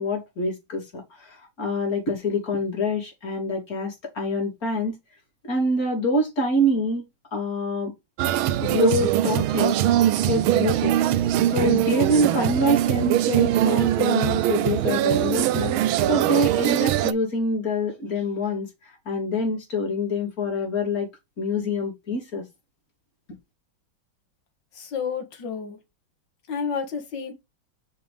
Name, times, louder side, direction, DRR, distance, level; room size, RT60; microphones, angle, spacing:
voice 1, 0.0-5.0 5.4-7.0 7.3-7.9 8.6-9.8 10.2-15.8 16.1-21.1 21.4-22.4, left 1 dB, 45° left, 3.7 m, -26 dB
sound 1, 8.2-17.1, right 12 dB, 90° right, 1.4 m, -22 dB
voice 2, 24.7-25.8 26.5-27.3, left 6 dB, 60° left, 2.4 m, -30 dB
6.4 x 5.5 x 3.4 m
omnidirectional pair, 2.2 m